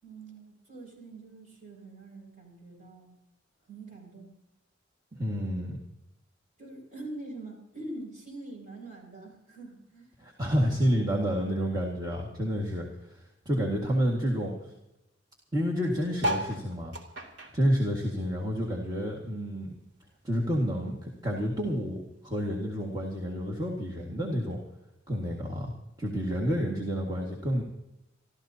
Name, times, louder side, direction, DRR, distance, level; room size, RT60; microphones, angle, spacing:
voice 1, 0.0-3.2 3.7-4.4 6.6-10.1 13.7-14.0, right 2 dB, 45° right, 1 dB, 5.9 m, -44 dB
voice 2, 5.1-5.8 10.2-14.7 15.5-16.9 17.5-19.7 20.2-24.6 25.1-25.7 26.0-27.6, equal, 20° right, -3 dB, 1.9 m, -29 dB
sound 1, 16.2-18.9 19.3-20.8 21.3-21.4 21.5-21.6 21.8-22.2 23.0-23.1, equal, 80° right, 2.6 m, -35 dB
27.0 x 13.5 x 2.8 m, 0.88 s
head